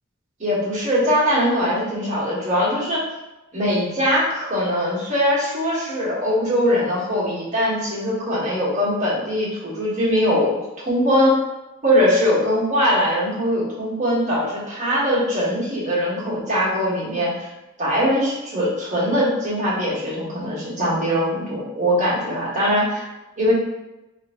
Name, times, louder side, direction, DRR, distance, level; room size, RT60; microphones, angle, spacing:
voice 1, 0.4-3.0 3.5-11.4 11.8-17.5 17.8-23.0 23.4-23.5, equal, 35° right, -8 dB, 1.4 m, -21 dB
3.1 x 2.6 x 3.6 m, 1.0 s
head